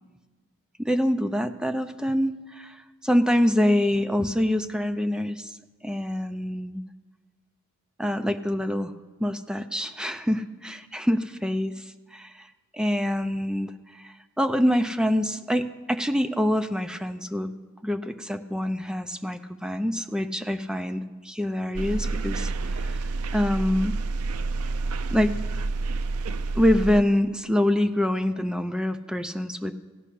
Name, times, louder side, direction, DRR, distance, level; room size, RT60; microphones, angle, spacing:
voice 1, 0.8-5.5 5.8-6.8 8.0-8.9 9.2-17.5 17.8-23.0 23.3-24.0 25.1-25.3 26.5-29.8, left 1 dB, 5° right, 8 dB, 0.5 m, -25 dB
sound 1, 21.7-27.0, right 3 dB, 70° right, 0.5 m, -29 dB
15.5 x 5.5 x 9.9 m, 1.3 s
head